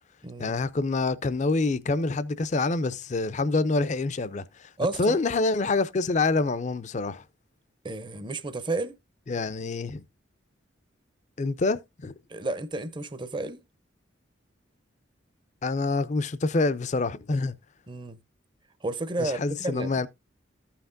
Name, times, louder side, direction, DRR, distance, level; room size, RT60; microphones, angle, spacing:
voice 1, 0.4-4.7 5.0-7.2 9.3-10.0 11.4-12.1 15.6-17.5 19.2-20.1, left 3 dB, 40° left, 0.5 m, -26 dB
voice 2, 4.8-5.2 7.8-9.0 12.3-13.6 17.9-18.2 18.8-19.9, right 2 dB, 25° right, 0.6 m, -31 dB
14.5 x 5.8 x 2.5 m
head